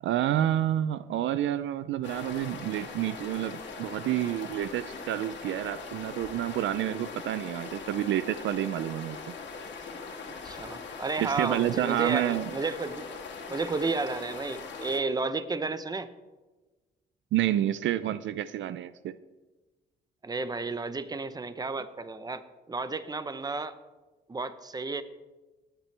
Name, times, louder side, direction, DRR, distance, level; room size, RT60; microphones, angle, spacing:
voice 1, 0.0-9.2 11.2-12.5 17.3-19.2, right 12 dB, 70° right, 15 dB, 0.5 m, -29 dB
sound 1, 2.0-15.0, left 5 dB, 65° left, 2.2 m, -41 dB
voice 2, 10.4-13.1 13.5-16.1 20.2-23.8 24.3-25.0, right 3 dB, 20° right, 12 dB, 0.8 m, -32 dB
18.0 x 9.1 x 3.3 m, 1.2 s
cardioid pair, 90°, 20 cm